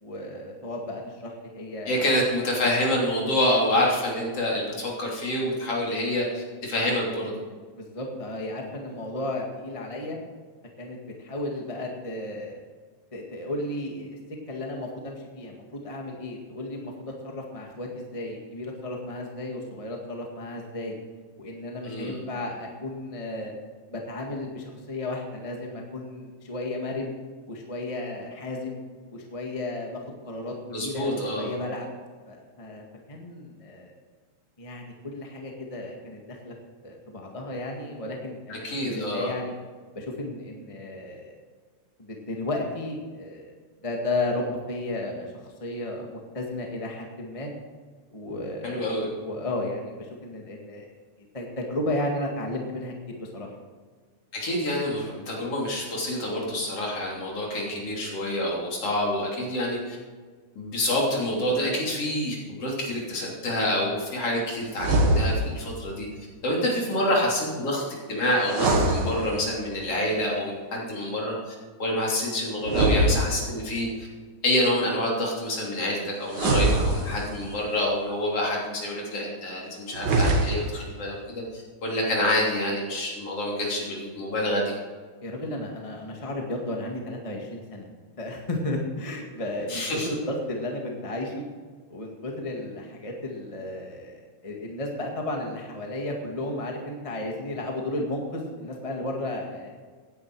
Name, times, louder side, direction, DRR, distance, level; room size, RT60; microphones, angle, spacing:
voice 1, 0.0-2.1 7.7-10.2 10.8-12.6 13.1-14.2 14.5-21.0 21.4-23.5 23.9-27.1 27.5-28.8 29.1-31.9 32.3-33.9 34.6-36.5 36.8-39.5 39.9-41.3 42.0-43.5 43.8-47.5 48.1-50.9 51.3-53.5 85.2-87.9 88.2-91.4 91.9-99.8, left 1 dB, 15° left, 0 dB, 1.3 m, -33 dB
voice 2, 1.9-7.4 21.8-22.2 30.7-31.5 38.5-39.3 48.6-49.1 54.3-60.0 60.6-66.1 66.4-67.8 68.1-71.5 71.8-74.1 74.4-84.6 89.7-90.1, left 1 dB, 50° left, -3 dB, 4.1 m, -27 dB
sound 1, 64.7-65.7 68.4-69.7 72.6-73.8 76.3-77.5 79.9-80.9, right 2 dB, 45° right, 1.7 m, -24 dB
17.0 x 10.0 x 4.8 m, 1.5 s
omnidirectional pair, 3.3 m